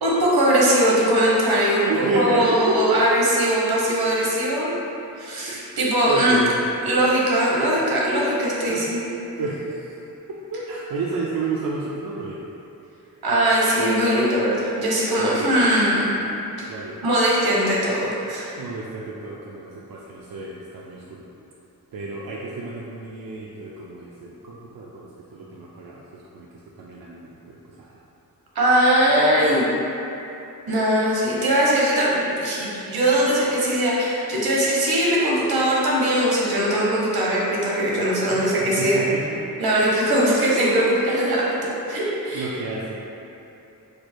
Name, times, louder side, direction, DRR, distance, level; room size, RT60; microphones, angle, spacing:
voice 1, 0.0-1.8 2.1-4.7 5.2-6.4 6.8-9.0 13.2-16.2 16.6-16.7 17.0-18.5 28.5-29.6 30.7-39.0 39.6-41.4 41.9-42.5, right 1 dB, 85° right, -5 dB, 1.0 m, -20 dB
voice 2, 1.8-3.0 4.2-4.4 5.5-5.6 6.1-6.7 8.5-8.8 9.1-10.0 10.3-12.4 15.2-15.6 16.7-17.0 18.6-21.2 21.9-28.0 38.3-38.5 38.8-39.4 42.3-42.9, right 3 dB, 70° right, -5 dB, 0.5 m, -30 dB
4.4 x 2.5 x 4.5 m, 2.9 s
wide cardioid pair, 140°, 36 cm